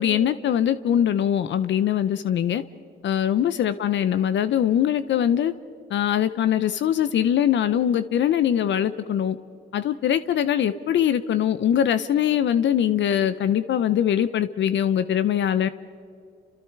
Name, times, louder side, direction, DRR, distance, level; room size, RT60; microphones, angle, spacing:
voice 1, 0.0-2.6 3.0-5.5 5.9-9.4 9.7-15.7, left 10 dB, 70° left, 13 dB, 0.8 m, -22 dB
29.0 x 27.5 x 4.7 m, 2.5 s
cardioid pair, 90°, 20 cm